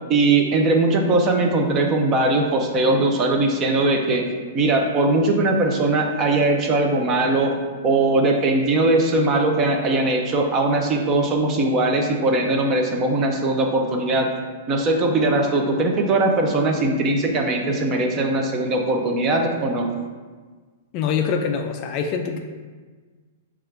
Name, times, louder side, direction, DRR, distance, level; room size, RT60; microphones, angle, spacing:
voice 1, 0.1-4.3 4.5-7.5 7.8-14.3 14.7-19.9, right 2 dB, 25° right, 2 dB, 0.5 m, -20 dB
voice 2, 20.9-22.4, left 6 dB, 35° left, 4 dB, 0.3 m, -24 dB
6.0 x 2.4 x 3.2 m, 1.4 s
hypercardioid pair, 160°, 0 cm